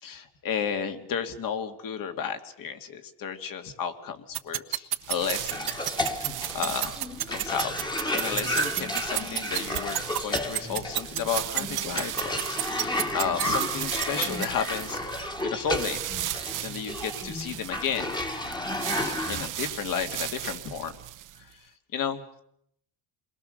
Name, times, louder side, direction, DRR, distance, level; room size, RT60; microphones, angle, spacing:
voice 1, 0.0-5.7 6.2-6.9 7.3-7.7 8.1-16.0 16.6-18.1 18.9-20.9 21.5-21.6 21.9-22.4, left 7 dB, 55° left, 7 dB, 2.4 m, -33 dB
sound 1, 4.3-14.5, right 14 dB, 65° right, 1.2 m, -27 dB
sound 2, 5.0-21.5, right 12 dB, 50° right, 0.9 m, -37 dB
Cough, 5.5-19.5, left 1 dB, 10° left, 1.6 m, -32 dB
28.0 x 21.5 x 6.6 m, 0.72 s
cardioid pair, 120°, 40 cm